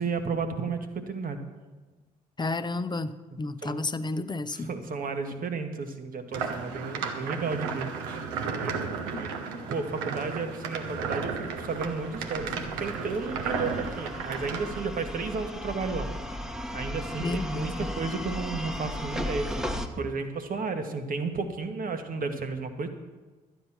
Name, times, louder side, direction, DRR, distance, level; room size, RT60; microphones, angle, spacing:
voice 1, 0.0-1.4 3.6-3.8 4.5-8.2 8.5-8.9 9.2-16.1 16.7-22.9, right 4 dB, 50° right, 7 dB, 1.5 m, -33 dB
voice 2, 2.4-3.1 3.4-4.7 9.1-9.2 17.2-17.9, left 3 dB, 25° left, 12 dB, 0.8 m, -31 dB
sound 1, 6.3-14.8, right 5 dB, 75° right, 1.0 m, -34 dB
sound 2, 11.0-19.9, equal, 5° right, 1.2 m, -36 dB
12.0 x 9.4 x 5.8 m, 1.3 s
hypercardioid pair, 45°, 19 cm